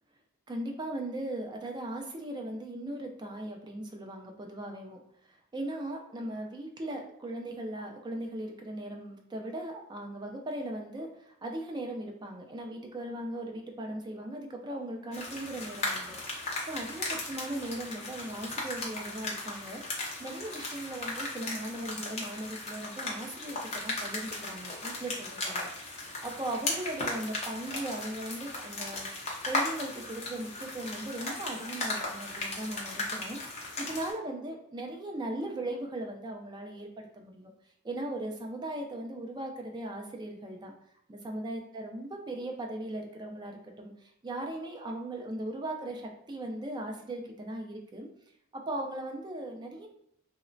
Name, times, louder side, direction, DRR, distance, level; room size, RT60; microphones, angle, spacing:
voice 1, 0.5-5.0 5.5-16.2 16.7-19.8 20.2-25.7 26.2-29.1 29.5-36.9 37.1-37.5 37.8-40.7 41.1-48.1 48.5-49.9, right 1 dB, 20° right, 1 dB, 0.4 m, -38 dB
sound 1, 15.1-34.1, left 2 dB, 30° left, 0.6 m, -37 dB
2.8 x 2.0 x 2.6 m, 0.74 s
head